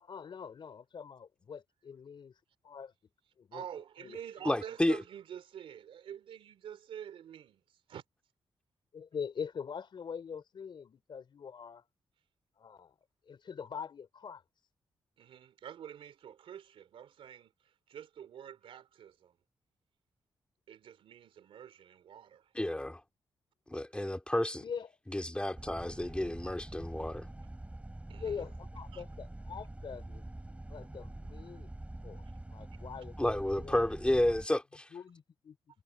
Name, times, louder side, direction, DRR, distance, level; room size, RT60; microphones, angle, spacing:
voice 1, 0.0-2.3 2.6-2.9 3.4-3.7 4.0-4.2 8.9-11.8 12.6-12.9 13.3-14.4 24.6-24.9 28.2-30.2 30.7-31.7 32.0-32.2 32.5-33.8 34.9-35.6, left 6 dB, 60° left, 3.2 m, -43 dB
voice 2, 3.5-7.6 7.9-8.0 15.2-17.5 17.9-19.3 20.7-22.5 28.1-28.5 28.9-29.0 31.4-31.5, right 9 dB, 80° right, 2.9 m, -47 dB
voice 3, 4.4-5.0 22.5-23.0 23.7-24.6 25.1-27.3 33.2-34.9, left 1 dB, 10° left, 2.4 m, -31 dB
sound 1, 25.6-34.5, right 1 dB, 15° right, 3.2 m, -45 dB
cardioid pair, 65°, 9 cm